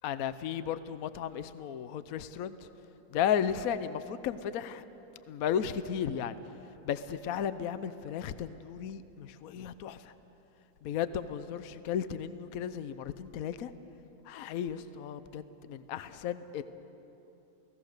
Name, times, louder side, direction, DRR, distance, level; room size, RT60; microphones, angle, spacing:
voice 1, 0.0-2.6 3.1-4.8 5.3-6.4 6.8-10.1 10.8-13.7 14.3-16.6, left 9 dB, 65° left, 13 dB, 0.9 m, -34 dB
29.0 x 18.0 x 6.6 m, 3.0 s
omnidirectional pair, 2.2 m